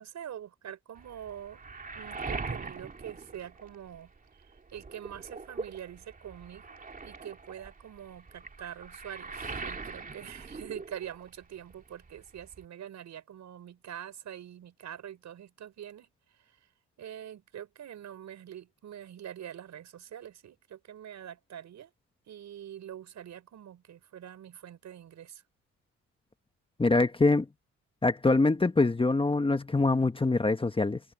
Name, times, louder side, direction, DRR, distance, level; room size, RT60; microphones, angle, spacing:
voice 1, 0.0-1.6 1.9-6.8 7.0-16.1 16.4-16.5 17.0-21.9 22.3-25.4, right 10 dB, 65° right, 6.4 m, -45 dB
Waves surf, 1.0-4.2 4.5-11.4 11.7-12.6, right 4 dB, 30° right, 2.7 m, -42 dB
voice 2, 26.8-27.5 28.0-31.0, left 3 dB, 15° left, 1.3 m, -24 dB
cardioid pair, 90°, 30 cm